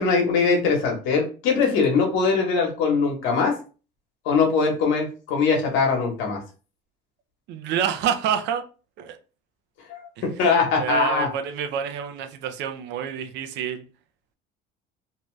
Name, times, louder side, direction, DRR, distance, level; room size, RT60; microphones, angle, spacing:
voice 1, 0.0-3.5 4.2-6.4 9.9-11.3, left 5 dB, 75° left, 1.0 m, -22 dB
voice 2, 7.5-8.6 9.0-9.2 10.2-10.5 10.8-13.8, right 8 dB, 65° right, 0.5 m, -28 dB
2.7 x 2.3 x 3.1 m
cardioid pair, 115°, 20 cm